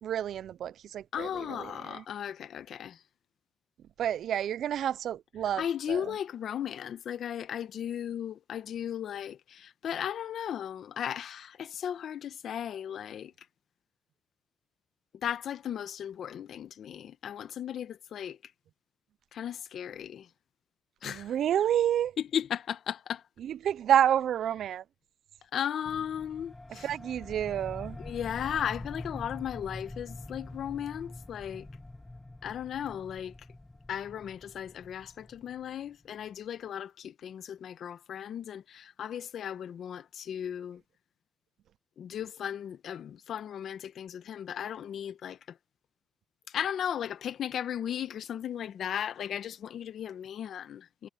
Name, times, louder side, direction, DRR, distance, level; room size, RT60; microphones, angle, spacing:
voice 1, 0.0-2.0 4.0-6.1 21.0-22.1 23.4-24.8 26.7-28.0, right 10 dB, 70° right, 0.4 m, -29 dB
voice 2, 1.1-3.0 5.6-13.3 15.2-18.4 19.3-20.3 21.0-21.3 22.2-23.2 25.5-26.9 28.0-31.7 32.4-33.3 33.9-40.8 42.0-45.4 46.5-51.1, left 9 dB, 65° left, 1.1 m, -36 dB
sound 1, 25.9-36.0, left 2 dB, 15° left, 0.7 m, -45 dB
cardioid pair, 90°, 0 cm